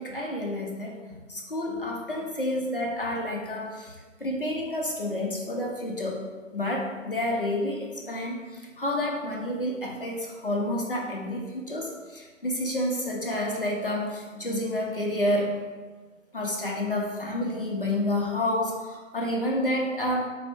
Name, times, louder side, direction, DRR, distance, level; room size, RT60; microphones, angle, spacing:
voice 1, 0.0-3.9 4.2-6.2 6.5-15.6 16.3-20.3, left 1 dB, 45° left, -1 dB, 0.6 m, -29 dB
4.2 x 2.0 x 3.5 m, 1.3 s
figure-of-eight pair, 165°, 40 cm